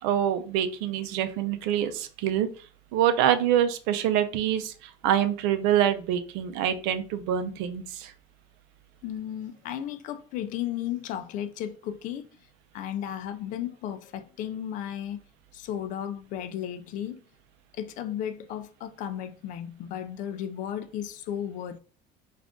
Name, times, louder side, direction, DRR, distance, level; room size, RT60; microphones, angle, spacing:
voice 1, 0.0-2.5 2.9-8.1, right 10 dB, 80° right, 0.6 m, -25 dB
voice 2, 9.0-12.4 12.7-15.2 15.5-17.2 17.7-21.8, left 10 dB, 50° left, 0.4 m, -34 dB
3.6 x 2.5 x 3.6 m
cardioid pair, 160°, 17 cm